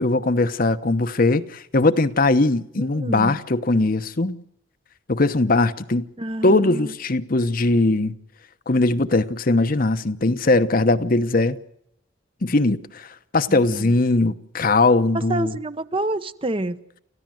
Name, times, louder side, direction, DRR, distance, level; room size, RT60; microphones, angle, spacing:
voice 1, 0.0-4.4 5.1-6.1 6.4-8.1 8.7-11.6 12.4-13.1 13.3-15.5, left 2 dB, 50° left, 1.0 m, -20 dB
voice 2, 2.8-3.4 6.2-6.9 13.5-13.9 15.1-16.8, right 2 dB, 30° right, 0.9 m, -28 dB
29.0 x 15.0 x 7.7 m
head